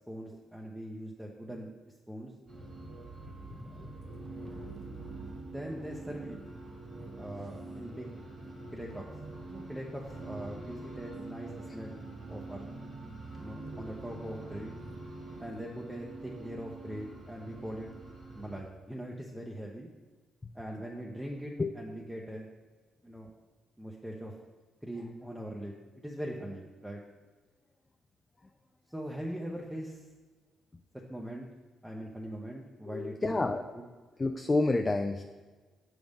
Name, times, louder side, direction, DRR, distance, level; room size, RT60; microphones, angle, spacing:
voice 1, 0.1-1.7 2.1-2.3 5.4-6.4 7.2-8.1 8.7-9.0 9.5-12.0 12.3-12.7 13.4-14.8 15.4-17.9 18.3-19.9 20.5-22.5 23.0-23.3 23.8-24.4 24.8-27.0 28.9-30.0 31.1-31.5 31.8-33.4 33.7-33.8, equal, 5° right, -1 dB, 0.7 m, -41 dB
sound 1, 2.5-18.6, right 2 dB, 30° right, 1.5 m, -45 dB
voice 2, 32.9-33.7 34.2-35.2, left 2 dB, 20° left, 6 dB, 0.3 m, -29 dB
6.0 x 3.5 x 5.2 m, 1.3 s
cardioid pair, 90°, 0 cm